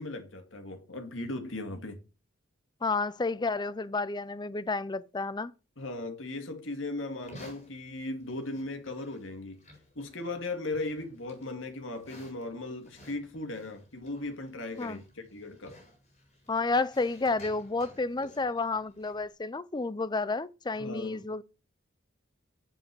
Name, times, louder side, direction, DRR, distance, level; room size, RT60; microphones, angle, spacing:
voice 1, 0.0-2.0 5.8-9.6 10.0-15.8 20.8-21.3, left 2 dB, 70° left, 2.2 m, -37 dB
voice 2, 2.8-5.5 14.8-15.0 16.5-21.4, left 3 dB, 20° left, 0.5 m, -31 dB
Livestock farm animals working animals, 7.1-19.3, left 1 dB, 35° left, 5.3 m, -55 dB
7.9 x 7.5 x 7.0 m
head